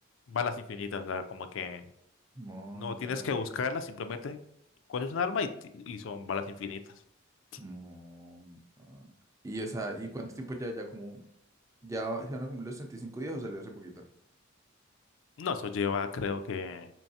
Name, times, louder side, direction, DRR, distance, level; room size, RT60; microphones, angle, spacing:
voice 1, 0.3-1.8 2.7-4.4 4.9-6.8 15.4-16.9, left 5 dB, 70° left, 9 dB, 0.4 m, -33 dB
voice 2, 2.4-3.3 7.6-9.1 9.4-11.2 11.8-14.0, right 1 dB, 15° right, 2 dB, 0.5 m, -39 dB
4.5 x 3.1 x 2.7 m, 0.74 s
head